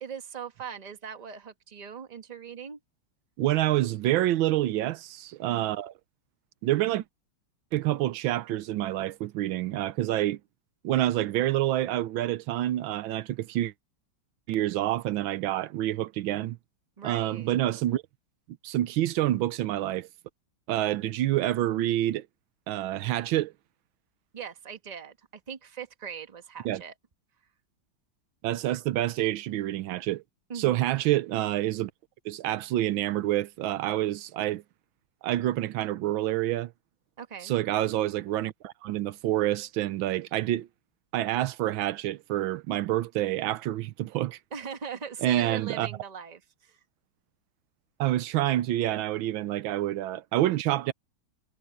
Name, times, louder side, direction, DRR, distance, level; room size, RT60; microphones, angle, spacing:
voice 1, 0.0-2.8 5.4-5.7 17.0-17.5 24.3-26.9 30.5-30.8 37.2-37.5 44.5-46.8, right 7 dB, 25° right, 1.2 m, -40 dB
voice 2, 3.4-5.9 6.6-7.0 7.7-10.4 10.8-13.7 14.5-16.6 17.0-18.0 18.6-20.1 20.7-22.3 22.7-23.5 26.6-26.8 28.4-30.2 30.5-31.9 32.2-34.6 35.2-36.7 37.4-40.7 41.1-44.4 45.2-45.9 48.0-50.9, right 14 dB, 85° right, 1.5 m, -27 dB
omnidirectional pair, 2.1 m